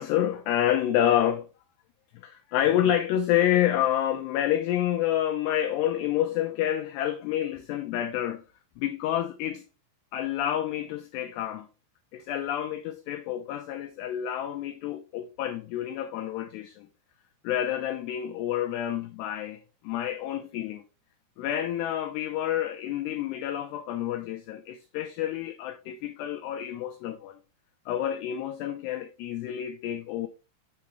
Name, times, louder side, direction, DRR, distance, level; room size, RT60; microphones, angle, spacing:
voice 1, 0.0-1.5 2.2-8.4 8.8-9.6 10.1-11.7 12.1-16.9 17.4-20.8 21.4-27.4 27.9-30.3, left 11 dB, 90° left, 2.3 m, -28 dB
7.0 x 7.0 x 3.1 m
omnidirectional pair, 5.6 m